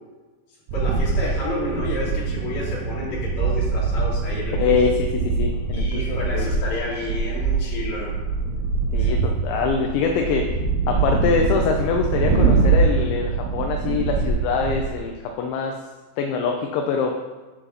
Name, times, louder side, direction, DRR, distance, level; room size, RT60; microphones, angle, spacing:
voice 1, 0.7-4.7 5.7-8.1 9.0-9.1, left 2 dB, 40° left, -8 dB, 4.0 m, -30 dB
sound 1, 0.7-14.9, right 4 dB, 90° right, 3.8 m, -23 dB
voice 2, 4.6-4.9 5.2-6.5 8.9-10.5 10.9-15.8 16.2-17.2, left 5 dB, 80° left, 2 dB, 2.9 m, -24 dB
10.0 x 7.6 x 4.1 m, 1.3 s
omnidirectional pair, 5.6 m